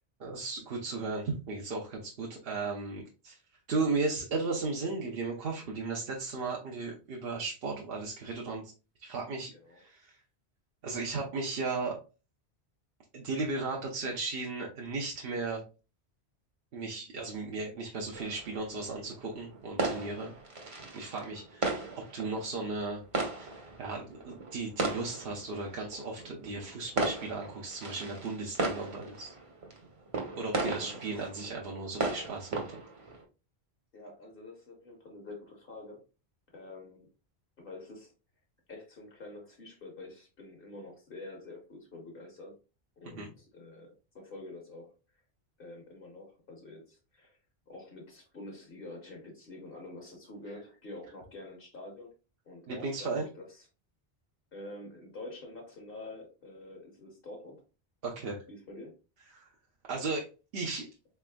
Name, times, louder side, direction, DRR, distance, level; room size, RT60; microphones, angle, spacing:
voice 1, 0.2-3.3 3.7-8.7 9.0-10.2 10.8-12.0 13.1-15.6 16.7-20.3 20.9-21.8 22.1-23.0 23.3-29.3 30.3-32.8 43.1-43.3 52.7-53.3 58.0-58.4 59.3-59.5 59.9-60.3 60.5-60.9, right 3 dB, 65° right, -1 dB, 0.9 m, -35 dB
voice 2, 9.5-9.8 21.7-21.9 30.5-30.9 33.9-36.0 36.5-37.1 37.6-38.1 38.7-42.5 43.0-44.9 45.6-47.4 47.7-52.1 52.4-53.4 54.5-57.6 58.5-59.0, left 2 dB, 60° left, 1 dB, 1.1 m, -47 dB
sound 1, 18.1-33.2, right 3 dB, 35° right, 0.8 m, -37 dB
4.0 x 3.4 x 2.2 m, 0.32 s
omnidirectional pair, 1.1 m